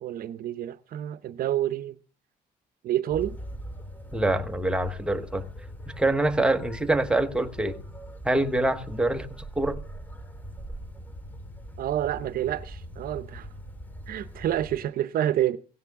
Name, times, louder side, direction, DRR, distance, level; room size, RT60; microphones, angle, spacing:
voice 1, 0.0-2.0 2.8-3.4 11.8-13.5 14.1-15.6, right 12 dB, 60° right, 0.7 m, -28 dB
sound 1, 3.1-14.8, equal, 10° left, 2.1 m, -41 dB
voice 2, 4.1-5.5 5.9-7.8 8.2-9.8, right 2 dB, 5° right, 1.1 m, -25 dB
16.5 x 16.0 x 3.6 m
cardioid pair, 110°, 17 cm